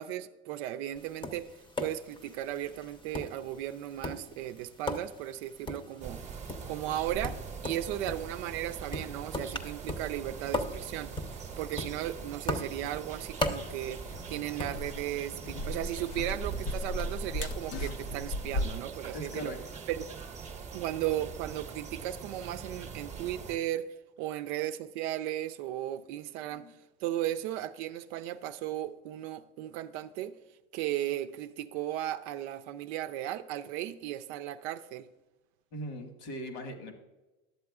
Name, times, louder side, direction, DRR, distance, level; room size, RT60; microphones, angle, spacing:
voice 1, 0.0-1.5 1.8-6.2 6.7-11.3 11.6-19.5 19.9-20.0 20.7-23.9 24.2-26.7 27.0-30.3 30.7-35.1, right 12 dB, 70° right, 0.5 m, -36 dB
Tap, 1.0-17.7, left 2 dB, 15° left, 0.8 m, -40 dB
sound 1, 6.0-23.6, right 6 dB, 20° right, 0.9 m, -43 dB
sound 2, 13.6-18.7, left 1 dB, 55° left, 0.7 m, -37 dB
voice 2, 19.1-19.6 26.5-26.7 35.7-36.9, equal, 70° left, 1.7 m, -40 dB
12.0 x 7.6 x 2.4 m
supercardioid pair, 105°, 34 cm